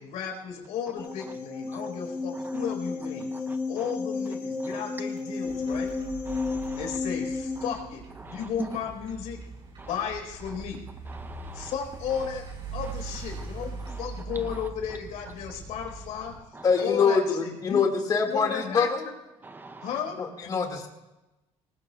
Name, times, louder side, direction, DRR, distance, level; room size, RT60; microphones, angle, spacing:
voice 1, 0.0-3.3 3.7-5.9 6.8-9.4 9.9-10.8 11.5-12.4 12.7-17.8 18.3-19.1 19.8-20.2, left 7 dB, 75° left, 2 dB, 4.4 m, -34 dB
sound 1, 1.0-7.7, left 3 dB, 15° left, 4.0 m, -32 dB
sound 2, 5.4-16.4, right 4 dB, 45° right, 4.6 m, -41 dB
voice 2, 6.3-7.0 8.2-8.5 9.8-9.9 11.1-11.7 13.9-14.1 14.3-14.6 16.5-16.7 19.4-20.0, right 3 dB, 15° right, 9 dB, 0.7 m, -45 dB
voice 3, 16.6-19.0 20.2-20.9, left 5 dB, 35° left, 2 dB, 2.1 m, -24 dB
25.0 x 20.0 x 2.4 m, 1.0 s
cardioid pair, 150°, 12 cm